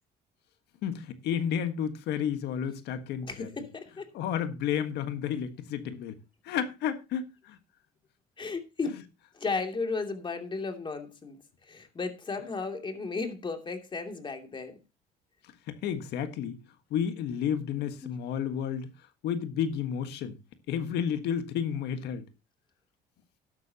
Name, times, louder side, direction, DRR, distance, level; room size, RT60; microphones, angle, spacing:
voice 1, 0.8-3.5 4.1-6.2 6.4-7.6 15.7-16.6 16.9-18.9 19.2-20.3 20.7-22.3, left 8 dB, 80° left, 1.6 m, -31 dB
voice 2, 3.2-4.1 8.4-9.0 9.3-14.8 17.8-18.1, left 4 dB, 30° left, 2.9 m, -35 dB
12.5 x 11.5 x 2.9 m
cardioid pair, 110°, 17 cm